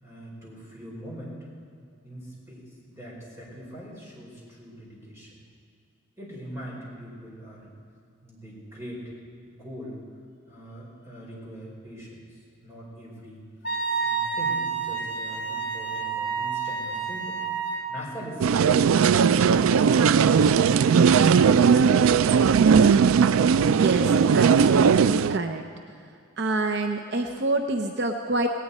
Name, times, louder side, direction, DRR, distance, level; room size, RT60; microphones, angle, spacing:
voice 1, 0.0-1.5 2.0-5.4 6.2-7.7 8.2-9.1 9.5-10.0 10.5-13.4 14.0-17.4 17.9-18.8 19.3-21.1, equal, 15° right, -5 dB, 4.8 m, -42 dB
Wind instrument woodwind instrument, 13.6-17.9, right 5 dB, 55° left, 2.2 m, -29 dB
sound 1, 18.4-25.4, right 6 dB, 80° right, 0.3 m, -18 dB
voice 2, 23.6-25.6 26.4-28.5, right 2 dB, 55° right, 5 dB, 0.7 m, -27 dB
18.5 x 18.0 x 4.3 m, 2.4 s
head